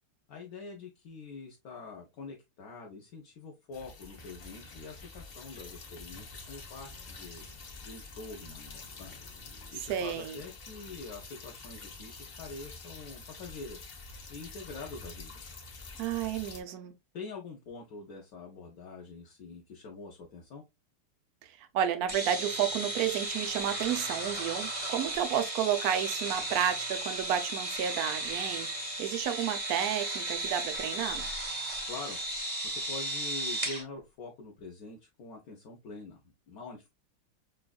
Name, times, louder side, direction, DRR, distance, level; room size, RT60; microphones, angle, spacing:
voice 1, 0.3-7.5 7.8-9.2 9.7-13.9 14.3-15.4 17.1-20.6 31.9-36.9, left 4 dB, 65° left, 0.9 m, -45 dB
sound 1, 3.7-16.6, left 3 dB, 85° left, 0.5 m, -47 dB
voice 2, 9.9-10.3 16.0-16.9 21.7-31.3, right 10 dB, 75° right, 0.8 m, -31 dB
sound 2, 22.1-33.8, right 1 dB, 30° right, 0.6 m, -35 dB
6.0 x 2.4 x 2.3 m
omnidirectional pair, 2.3 m